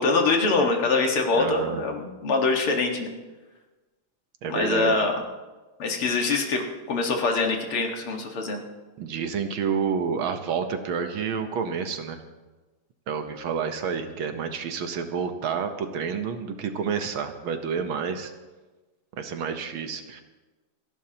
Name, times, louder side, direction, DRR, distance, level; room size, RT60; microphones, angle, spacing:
voice 1, 0.0-3.1 4.5-5.2 5.8-6.6 6.9-8.6, left 3 dB, 80° left, 2 dB, 2.6 m, -24 dB
voice 2, 1.4-1.8 4.4-5.0 9.0-12.2 13.1-18.3 19.2-20.2, right 6 dB, 70° right, 7 dB, 1.8 m, -29 dB
29.0 x 11.0 x 2.9 m, 1.2 s
omnidirectional pair, 2.4 m